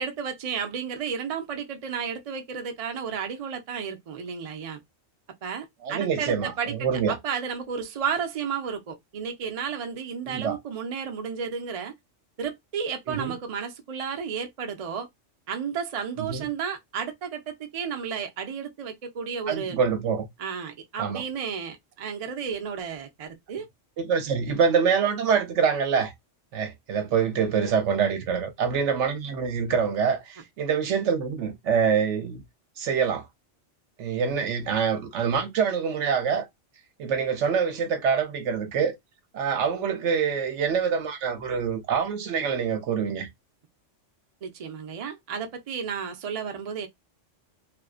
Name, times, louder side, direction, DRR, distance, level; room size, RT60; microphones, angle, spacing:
voice 1, 0.0-4.8 5.4-6.7 7.1-11.9 12.4-15.1 15.5-19.8 20.4-23.7 44.4-46.9, right 6 dB, 50° right, 0.4 m, -32 dB
voice 2, 5.8-7.2 10.3-10.6 13.1-13.3 16.2-16.5 19.5-20.2 21.0-21.2 24.0-26.1 26.5-32.4 32.8-33.3 34.0-36.5 37.0-38.9 39.3-43.3, right 6 dB, 75° right, 1.0 m, -25 dB
2.5 x 2.2 x 2.4 m
omnidirectional pair, 1.3 m